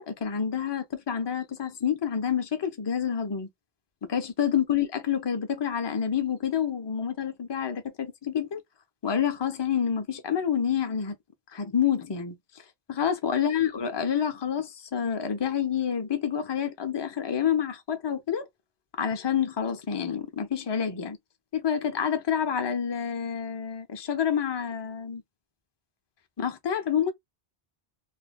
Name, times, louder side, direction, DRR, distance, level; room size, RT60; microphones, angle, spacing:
voice 1, 0.0-3.5 4.1-8.6 9.0-11.2 11.5-12.4 12.9-18.5 19.0-21.2 21.5-25.2 26.4-27.1, left 8 dB, 35° left, 0.5 m, -28 dB
2.5 x 2.1 x 3.2 m
omnidirectional pair, 1.0 m